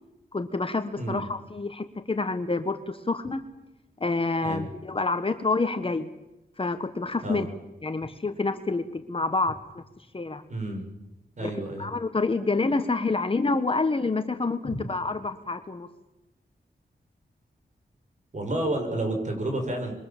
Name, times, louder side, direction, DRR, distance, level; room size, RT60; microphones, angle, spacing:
voice 1, 0.3-3.4 4.0-6.1 6.6-7.5 7.8-9.8 10.1-10.4 11.4-11.5 11.8-15.9, left 3 dB, 30° left, 9 dB, 1.6 m, -28 dB
voice 2, 10.5-10.8 11.4-11.9 18.3-19.9, right 1 dB, 45° right, 3 dB, 6.9 m, -30 dB
26.5 x 23.0 x 7.6 m, 0.95 s
wide cardioid pair, 105°, 18 cm